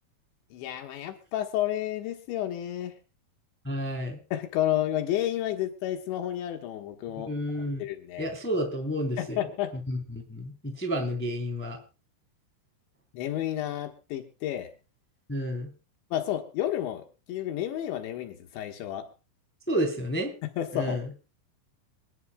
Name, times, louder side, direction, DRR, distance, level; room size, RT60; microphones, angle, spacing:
voice 1, 0.5-2.9 4.3-7.3 7.8-8.3 9.2-9.8 13.1-14.7 16.1-19.1 20.6-21.0, left 12 dB, 80° left, 4 dB, 3.5 m, -31 dB
voice 2, 3.6-4.2 7.3-7.8 8.2-9.4 9.9-11.8 15.3-15.7 19.7-20.3 20.7-21.0, equal, 5° left, 3 dB, 2.1 m, -30 dB
27.0 x 11.0 x 2.2 m, 0.32 s
omnidirectional pair, 5.2 m